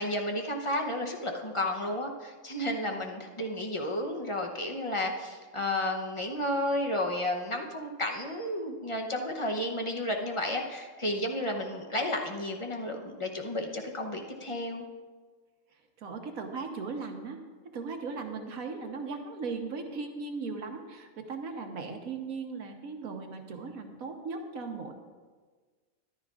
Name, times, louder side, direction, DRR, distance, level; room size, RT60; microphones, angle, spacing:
voice 1, 0.0-14.8, left 1 dB, 30° left, 2 dB, 0.7 m, -32 dB
voice 2, 16.0-17.4 17.7-24.9, right 4 dB, 80° right, 4 dB, 1.4 m, -37 dB
14.0 x 11.5 x 2.4 m, 1.5 s
omnidirectional pair, 1.4 m